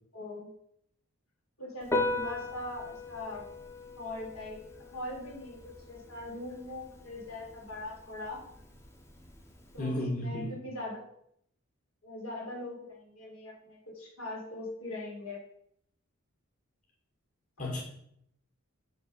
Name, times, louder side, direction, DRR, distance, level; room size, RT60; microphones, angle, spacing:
voice 1, 0.1-0.5 1.6-3.4 4.0-4.6 4.9-8.4 9.7-11.1 12.0-15.4, left 2 dB, 80° left, -3 dB, 3.3 m, -41 dB
Piano, 1.8-9.8, left 2 dB, 15° left, 1.0 m, -39 dB
voice 2, 9.8-10.6 17.6-17.8, left 1 dB, 40° left, -4 dB, 1.8 m, -33 dB
9.1 x 3.5 x 6.3 m, 0.69 s
head